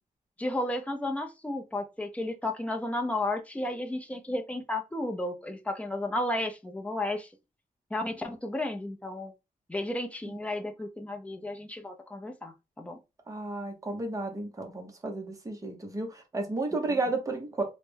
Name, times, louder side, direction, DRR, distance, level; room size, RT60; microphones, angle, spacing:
voice 1, 0.4-7.3 7.9-9.3 9.7-13.0, left 1 dB, 10° left, 0.5 m, -33 dB
voice 2, 13.3-17.6, right 2 dB, 20° right, 0.8 m, -32 dB
3.2 x 2.1 x 3.2 m
wide cardioid pair, 135°, 15 cm